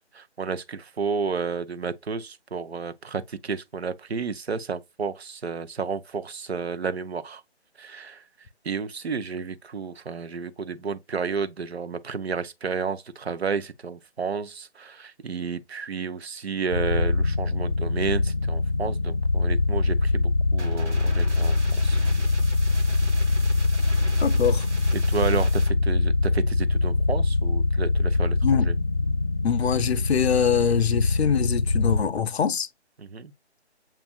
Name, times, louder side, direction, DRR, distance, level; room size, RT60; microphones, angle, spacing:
voice 1, 0.1-7.4 7.8-8.3 8.6-22.0 24.9-28.4 28.6-28.7 33.0-33.3, right 5 dB, 65° right, 0.7 m, -31 dB
sound 1, 16.7-32.0, left 3 dB, 15° left, 0.7 m, -23 dB
sound 2, 20.6-25.7, right 2 dB, 85° right, 1.5 m, -38 dB
voice 2, 24.2-24.7 28.4-28.7 29.4-32.7, left 7 dB, 65° left, 0.5 m, -24 dB
7.3 x 2.5 x 2.3 m
figure-of-eight pair, 160°, 34 cm